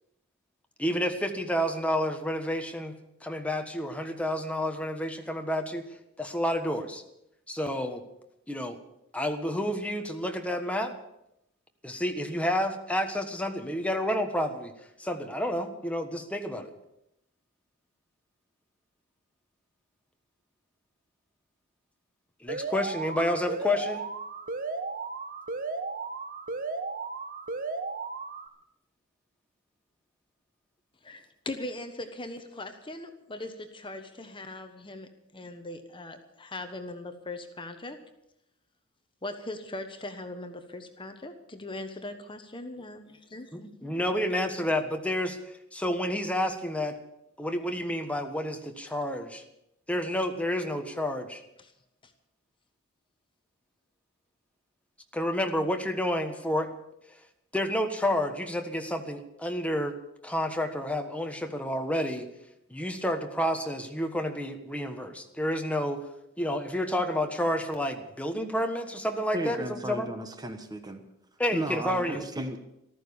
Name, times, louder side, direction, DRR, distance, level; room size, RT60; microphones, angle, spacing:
voice 1, 0.8-2.9 3.2-5.8 6.2-7.0 7.5-8.0 8.5-8.8 9.1-10.9 11.8-14.7 15.0-16.7 22.4-24.0 43.5-47.0 47.4-49.4 49.9-51.4 55.1-56.7 57.5-60.0 60.2-62.3 62.7-66.0 66.4-70.1 71.4-72.2, left 1 dB, 5° left, 5 dB, 1.4 m, -30 dB
Alarm, 22.5-28.5, right 4 dB, 40° right, 1.3 m, -35 dB
voice 2, 31.0-38.0 39.2-43.5 51.6-51.7 52.0-52.1, left 2 dB, 25° left, 7 dB, 1.2 m, -40 dB
voice 3, 69.3-71.0 71.5-72.6, right 1 dB, 20° right, 7 dB, 1.2 m, -35 dB
14.5 x 13.5 x 7.1 m, 0.82 s
head